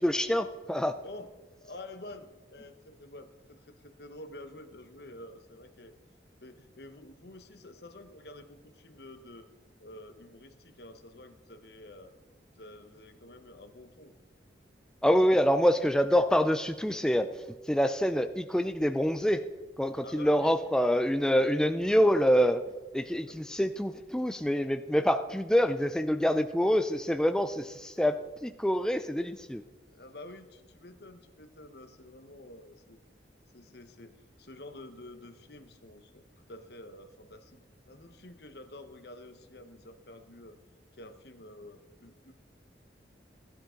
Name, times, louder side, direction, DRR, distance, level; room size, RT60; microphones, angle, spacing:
voice 1, 0.0-1.0 15.0-19.4 19.8-22.6 22.9-29.6, equal, 5° left, 8 dB, 0.3 m, -26 dB
voice 2, 1.0-5.9 6.4-9.5 9.8-12.2 12.5-14.1 20.0-20.5 23.3-23.4 29.9-33.0 33.5-37.6 37.9-40.6 41.0-42.3, left 1 dB, 60° left, 8 dB, 1.0 m, -49 dB
15.0 x 11.5 x 3.8 m, 1.3 s
head